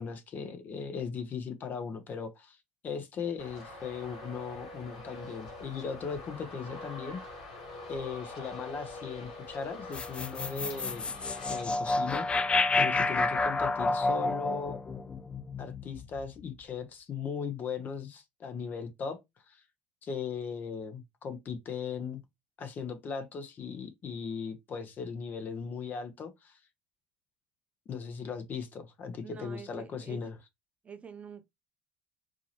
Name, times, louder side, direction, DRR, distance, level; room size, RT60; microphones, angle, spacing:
voice 1, 0.0-2.6 2.8-7.2 7.9-11.0 11.5-12.3 12.8-14.8 15.6-19.2 19.5-19.6 20.0-22.2 22.6-26.6 27.9-30.3, left 6 dB, 45° left, 1.0 m, -38 dB
Traffic noise roadway noise, 3.4-11.6, left 2 dB, 80° left, 2.1 m, -44 dB
sound 1, 9.9-16.2, left 3 dB, 25° left, 0.5 m, -30 dB
voice 2, 29.2-30.2 30.8-31.4, right 7 dB, 30° right, 0.9 m, -46 dB
4.5 x 2.9 x 3.0 m
hypercardioid pair, 70°, 4 cm